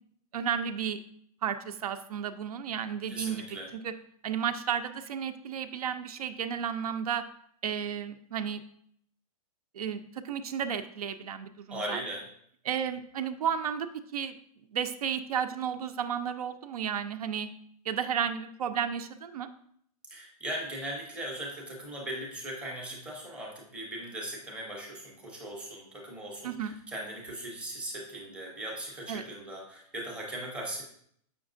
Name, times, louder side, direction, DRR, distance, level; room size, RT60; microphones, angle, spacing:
voice 1, 0.3-1.0 1.4-3.6 3.8-3.9 4.2-7.2 7.6-8.6 9.7-12.0 12.6-14.4 14.7-17.5 17.8-19.5 26.4-26.7 29.1-29.2, right 8 dB, 70° right, 9 dB, 0.5 m, -33 dB
voice 2, 3.1-3.7 11.7-12.3 20.1-30.8, right 1 dB, 5° right, -2 dB, 0.6 m, -39 dB
7.1 x 5.8 x 2.5 m, 0.66 s
hypercardioid pair, 175°, 20 cm